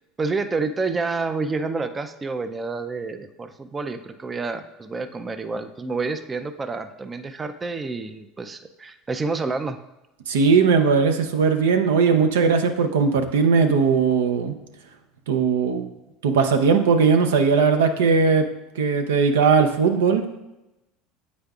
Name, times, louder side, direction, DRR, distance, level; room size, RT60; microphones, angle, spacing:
voice 1, 0.2-9.8, right 4 dB, 25° right, 10 dB, 0.4 m, -29 dB
voice 2, 10.3-14.6 15.3-15.8 16.2-18.5 18.8-20.4, right 5 dB, 85° right, 7 dB, 0.5 m, -19 dB
7.9 x 5.0 x 2.4 m, 0.98 s
hypercardioid pair, 85°, 0 cm